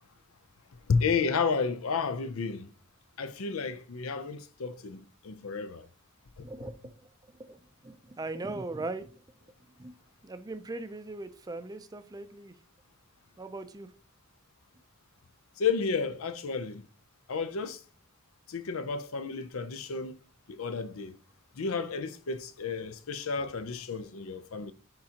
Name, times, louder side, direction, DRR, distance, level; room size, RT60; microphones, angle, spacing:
voice 1, 0.9-2.7 3.2-5.9 6.4-6.5 15.6-16.8 17.3-17.8 18.5-20.2 20.5-21.1 21.6-24.7, left 5 dB, 85° left, 0.6 m, -32 dB
voice 2, 6.4-6.9 7.3-9.2 9.8-10.0 10.2-12.6 13.4-13.9, right 2 dB, 20° right, 0.4 m, -39 dB
10.5 x 3.8 x 2.9 m
head